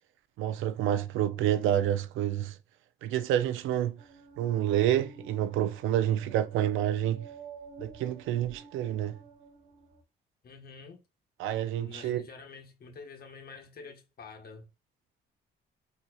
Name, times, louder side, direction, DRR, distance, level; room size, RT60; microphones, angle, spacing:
voice 1, 0.4-2.6 3.0-4.0 4.4-7.3 7.8-9.2 11.4-12.2, right 11 dB, 90° right, 0.4 m, -28 dB
sound 1, 4.0-10.0, right 4 dB, 40° right, 1.1 m, -51 dB
voice 2, 10.4-11.0 11.8-14.7, left 4 dB, 50° left, 1.1 m, -47 dB
4.3 x 2.7 x 2.3 m
cardioid pair, 90°, 20 cm